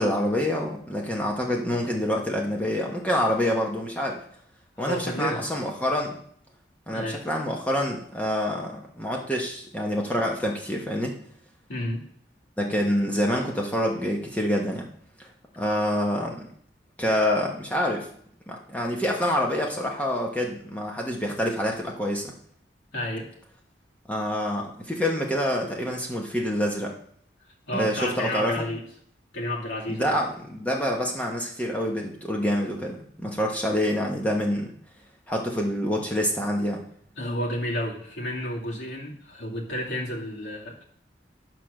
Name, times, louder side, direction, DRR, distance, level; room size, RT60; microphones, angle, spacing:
voice 1, 0.0-4.2 4.8-6.2 6.9-11.1 12.6-14.9 15.2-15.3 15.6-16.4 17.0-18.1 18.5-22.3 24.1-26.9 27.7-28.5 29.9-34.7 35.3-36.8, equal, 10° left, 0 dB, 1.0 m, -26 dB
voice 2, 4.8-5.5 6.9-7.2 11.7-12.0 22.9-23.3 27.7-28.8 29.3-30.2 37.2-40.8, left 1 dB, 85° left, -2 dB, 2.3 m, -31 dB
11.0 x 4.6 x 6.3 m, 0.63 s
head